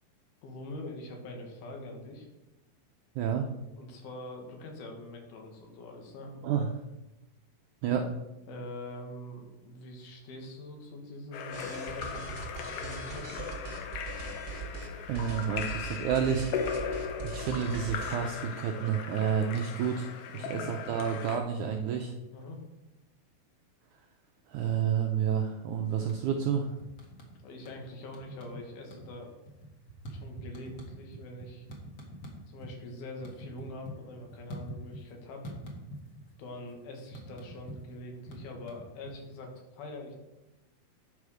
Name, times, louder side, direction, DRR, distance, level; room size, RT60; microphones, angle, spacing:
voice 1, 0.4-2.3 3.8-6.4 8.5-12.3 12.6-13.4 20.3-20.6 22.3-22.6 27.4-29.3 30.1-31.7 32.5-35.5 36.4-40.1, left 1 dB, 85° left, 2 dB, 3.5 m, -44 dB
voice 2, 3.2-3.5 6.4-6.7 7.8-8.1 15.1-22.1 24.5-26.7, right 7 dB, 80° right, 2 dB, 1.7 m, -30 dB
Splash splatter / Drip / Trickle dribble, 11.3-21.4, left 6 dB, 70° left, 2.2 m, -38 dB
sound 1, 11.5-14.9 15.1-18.3, right 4 dB, 45° right, 1.6 m, -41 dB
sound 2, 26.1-26.5 26.8-27.8 28.1-28.6 28.9-32.7 33.0-35.1 35.4-36.3 36.6-39.4, right 1 dB, 50° left, 1.3 m, -45 dB
9.5 x 4.9 x 6.4 m, 0.98 s
omnidirectional pair, 4.2 m